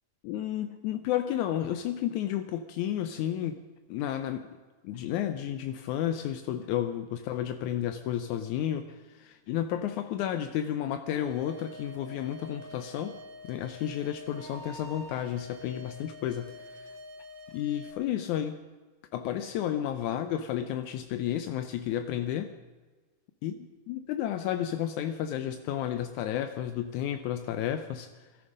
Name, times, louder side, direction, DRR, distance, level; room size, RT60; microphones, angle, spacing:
voice 1, 0.2-3.6 3.9-4.6 4.8-13.2 13.4-16.9 17.5-18.6 19.1-22.5 23.4-23.5 23.9-28.2, left 11 dB, 80° left, 9 dB, 1.7 m, -32 dB
sound 1, 11.2-17.9, left 1 dB, 85° right, 3.4 m, -47 dB
20.5 x 13.5 x 5.3 m, 1.3 s
omnidirectional pair, 4.1 m